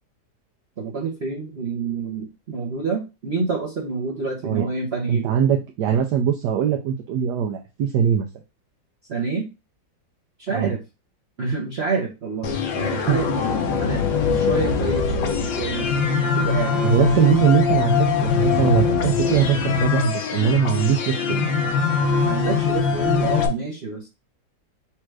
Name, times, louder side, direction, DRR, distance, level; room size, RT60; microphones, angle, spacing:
voice 1, 0.8-5.3 9.1-9.5 10.4-10.8 11.4-13.3 13.7-14.0 14.3-15.9 16.4-17.1 22.2-24.1, right 4 dB, 45° right, -3 dB, 0.9 m, -28 dB
voice 2, 5.1-8.3 10.5-10.7 13.1-13.4 16.8-21.5, right 8 dB, 70° right, 3 dB, 1.2 m, -21 dB
sound 1, 12.4-23.5, left 5 dB, 80° left, 1.5 m, -22 dB
4.3 x 2.5 x 4.6 m, 0.27 s
omnidirectional pair, 2.0 m